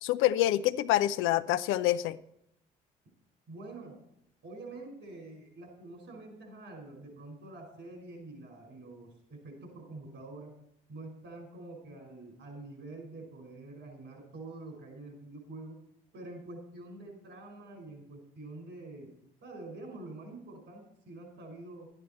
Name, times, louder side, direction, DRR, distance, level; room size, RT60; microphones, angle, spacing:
voice 1, 0.0-2.2, left 14 dB, 70° left, 13 dB, 0.6 m, -26 dB
voice 2, 3.5-4.0 4.4-10.5 10.9-15.8 16.1-19.1 19.4-21.9, right 2 dB, 60° right, 3 dB, 5.2 m, -46 dB
12.0 x 10.0 x 4.3 m, 0.79 s
hypercardioid pair, 55°, 21 cm